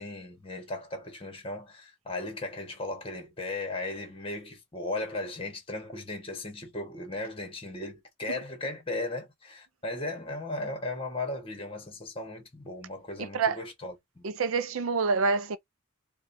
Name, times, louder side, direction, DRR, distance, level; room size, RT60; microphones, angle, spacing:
voice 1, 0.0-14.2, left 2 dB, 25° left, 1.3 m, -36 dB
voice 2, 13.2-13.6 14.2-15.6, right 4 dB, 80° right, 0.5 m, -27 dB
4.9 x 2.3 x 2.7 m
head